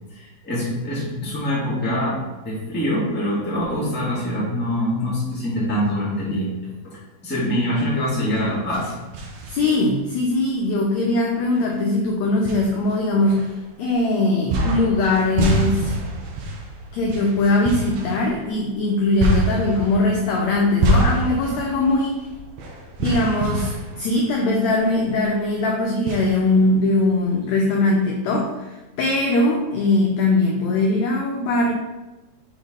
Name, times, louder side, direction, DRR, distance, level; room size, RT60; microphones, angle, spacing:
voice 1, 0.1-2.2 2.4-8.9, equal, 5° left, -8 dB, 1.1 m, -24 dB
sound 1, 8.3-10.0 10.5-10.6 11.6-11.7 12.4-13.9 14.5-24.9 25.2-25.3 26.0-27.1, right 2 dB, 65° right, 2.0 m, -26 dB
voice 2, 9.5-16.0 16.9-22.3 23.0-31.7, left 2 dB, 85° left, 0 dB, 1.5 m, -21 dB
6.9 x 4.0 x 4.0 m, 1.1 s
omnidirectional pair, 4.0 m